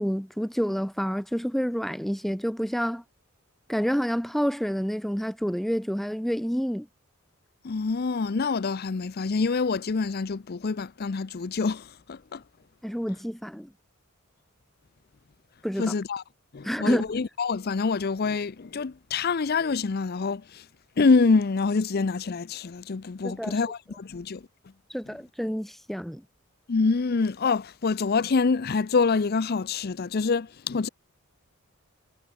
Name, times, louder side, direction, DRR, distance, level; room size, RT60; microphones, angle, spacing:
voice 1, 0.0-3.0 3.7-6.9 12.8-13.7 15.6-15.9 16.6-17.0 23.2-23.6 24.9-26.2, equal, ahead, 0.8 m, -28 dB
voice 2, 7.6-12.4 15.8-16.2 16.5-20.7 21.0-24.4 25.1-25.2 26.7-30.9, left 4 dB, 45° left, 0.5 m, -26 dB
head